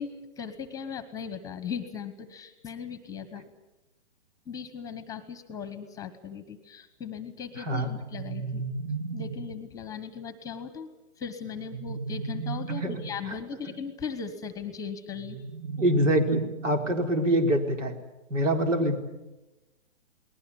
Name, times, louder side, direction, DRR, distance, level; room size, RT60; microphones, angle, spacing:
voice 1, 0.0-3.4 4.5-8.6 9.1-10.9 11.2-15.4, left 6 dB, 10° left, 13 dB, 1.1 m, -38 dB
voice 2, 7.5-7.9 12.8-13.3 15.8-18.0 18.3-19.0, right 1 dB, 90° right, 5 dB, 4.5 m, -25 dB
sound 1, 7.8-9.6 11.4-13.3 15.1-17.1, right 5 dB, 55° right, 3.5 m, -35 dB
29.5 x 20.0 x 7.1 m, 1.0 s
hypercardioid pair, 155°, 36 cm